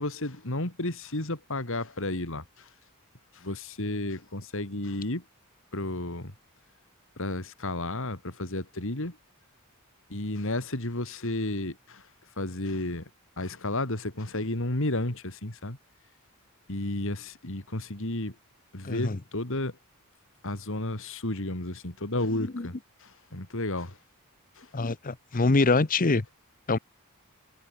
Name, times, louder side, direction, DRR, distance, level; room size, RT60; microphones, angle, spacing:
voice 1, 0.0-2.7 3.3-5.2 5.7-6.3 7.2-9.2 10.1-12.1 12.4-13.1 13.4-15.8 16.7-18.3 18.7-19.7 20.4-22.7 23.0-24.0 24.6-24.7, left 1 dB, 60° left, 3.3 m, -32 dB
voice 2, 18.8-19.2 22.4-22.7 24.7-26.3 26.7-26.8, left 3 dB, 40° left, 0.9 m, -25 dB
head